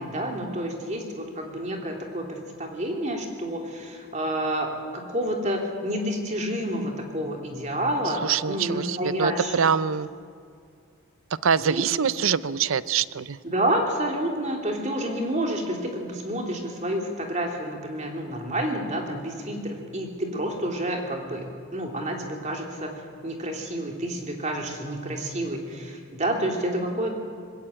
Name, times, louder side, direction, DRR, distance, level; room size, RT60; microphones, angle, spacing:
voice 1, 0.0-9.8 11.6-11.9 13.4-21.4 21.7-22.9 23.2-27.1, right 1 dB, 35° right, 2 dB, 3.0 m, -29 dB
voice 2, 8.2-10.1 11.4-13.4, right 7 dB, 75° right, 17 dB, 0.6 m, -24 dB
20.5 x 16.0 x 8.9 m, 2.3 s
head